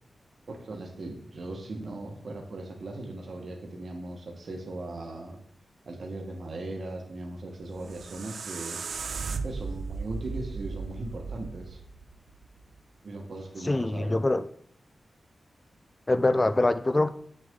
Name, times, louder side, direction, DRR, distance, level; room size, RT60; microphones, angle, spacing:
voice 1, 0.5-5.4 5.9-8.8 9.4-11.8 13.0-14.2, right 2 dB, 60° right, 2 dB, 1.3 m, -38 dB
sound 1, 7.6-12.7, right 4 dB, 80° right, 0.5 m, -36 dB
voice 2, 13.6-14.4 16.1-17.1, left 2 dB, 20° left, 13 dB, 0.4 m, -24 dB
7.9 x 6.5 x 3.6 m, 0.63 s
wide cardioid pair, 160°, 0 cm